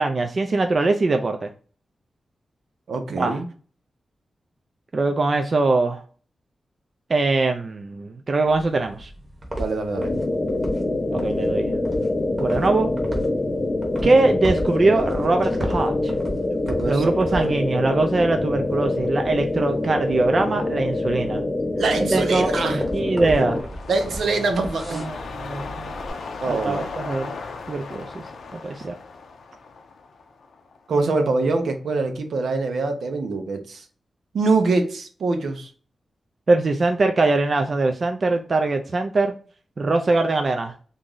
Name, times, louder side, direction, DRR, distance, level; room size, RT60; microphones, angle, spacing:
voice 1, 0.0-1.5 3.1-3.4 4.9-6.0 7.1-9.1 11.1-11.6 12.4-12.9 14.0-16.1 16.8-21.4 22.0-23.6 24.9-25.9 26.5-27.3 27.7-28.2 28.5-28.9 36.5-39.4 39.8-40.7, right 3 dB, 35° right, 0.4 m, -22 dB
voice 2, 2.9-3.5 9.6-10.1 16.7-17.5 21.8-22.8 23.9-25.1 26.4-26.9 30.9-33.8 34.3-35.7, right 3 dB, 75° right, 0.7 m, -24 dB
sound 1, 8.4-26.1, equal, 20° right, 0.9 m, -37 dB
sound 2, 10.0-23.6, left 2 dB, 20° left, 0.5 m, -25 dB
sound 3, 22.8-31.1 31.5-31.6, left 4 dB, 80° left, 0.5 m, -37 dB
3.0 x 2.6 x 3.6 m
wide cardioid pair, 170°, 0 cm